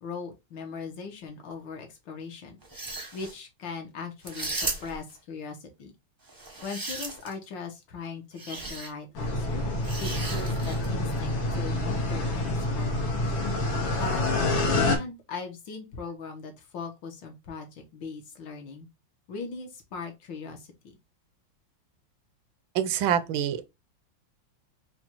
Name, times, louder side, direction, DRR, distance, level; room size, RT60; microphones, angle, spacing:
voice 1, 0.0-2.6 3.1-5.9 6.6-9.7 10.0-13.2 13.9-18.9 19.3-21.0, left 4 dB, 70° left, 1.6 m, -39 dB
sound 1, 2.6-3.3 4.2-5.1 6.3-7.4 8.4-8.9 9.8-10.9, right 2 dB, 25° right, 0.5 m, -36 dB
sound 2, 9.2-15.0, left 2 dB, 90° left, 2.0 m, -27 dB
voice 2, 22.7-23.6, right 9 dB, 80° right, 1.4 m, -26 dB
4.3 x 2.3 x 4.4 m
omnidirectional pair, 2.2 m